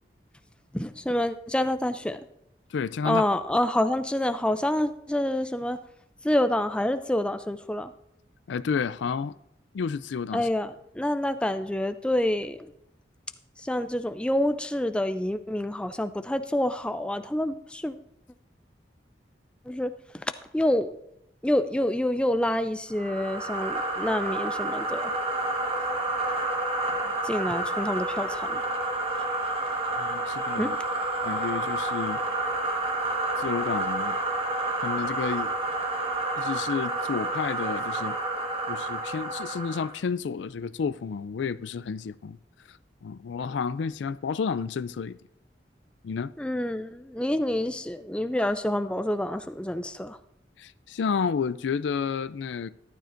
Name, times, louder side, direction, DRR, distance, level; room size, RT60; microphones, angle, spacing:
voice 1, 0.7-2.2 3.0-5.8 6.2-7.9 10.3-10.7 11.0-12.7 13.6-17.9 19.7-19.9 20.5-20.9 21.4-25.1 27.2-28.6 30.6-30.7 46.4-50.2, left 1 dB, 5° left, 0.4 m, -27 dB
voice 2, 2.7-3.2 8.5-9.3 9.7-10.5 26.9-27.1 30.0-30.8 31.2-32.2 33.4-34.2 34.8-35.5 36.4-38.2 38.7-42.4 42.7-45.2 46.0-46.3 50.6-52.7, left 6 dB, 85° left, 0.4 m, -31 dB
sound 1, 22.9-40.0, right 2 dB, 30° right, 1.4 m, -29 dB
13.5 x 12.0 x 2.6 m
head